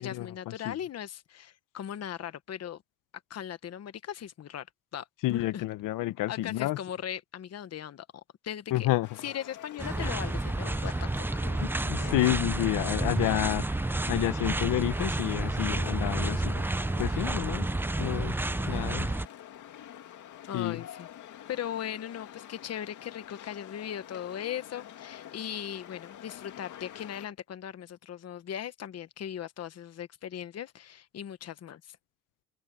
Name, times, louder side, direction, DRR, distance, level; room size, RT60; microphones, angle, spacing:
voice 1, 0.0-2.8 3.3-4.7 4.9-5.6 6.0-8.9 9.2-11.2 20.5-21.1 21.5-32.0, left 10 dB, 50° left, 1.2 m, -39 dB
voice 2, 5.2-6.8 8.7-9.1 11.6-13.7 14.1-16.5 17.0-17.7 18.0-18.3 18.7-19.1 20.5-20.8, left 16 dB, 85° left, 0.8 m, -29 dB
sound 1, 9.0-27.3, left 11 dB, 65° left, 2.2 m, -47 dB
sound 2, 9.8-19.3, right 2 dB, 5° right, 0.5 m, -30 dB
sound 3, 10.3-15.5, right 3 dB, 25° right, 5.6 m, -60 dB
cardioid pair, 110°, 32 cm